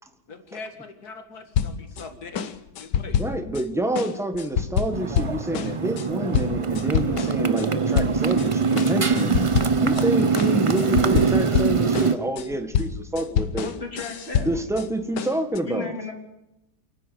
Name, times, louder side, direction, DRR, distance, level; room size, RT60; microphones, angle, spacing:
voice 1, 0.3-3.2, left 4 dB, 65° left, 7 dB, 2.4 m, -41 dB
sound 1, 1.5-2.0 2.3-3.6 3.9-7.7 7.9-8.5 8.8-10.1 10.4-14.9 15.2-15.6, left 8 dB, 90° left, 1.6 m, -27 dB
voice 2, 3.2-9.5 9.8-13.7 14.4-15.9, right 1 dB, ahead, 7 dB, 1.5 m, -28 dB
Motorcycle, 4.9-12.2, right 5 dB, 35° right, 0.5 m, -23 dB
voice 3, 13.5-14.7 15.6-16.1, left 3 dB, 35° left, 3 dB, 3.3 m, -34 dB
28.5 x 9.7 x 9.4 m, 0.90 s
omnidirectional pair, 1.8 m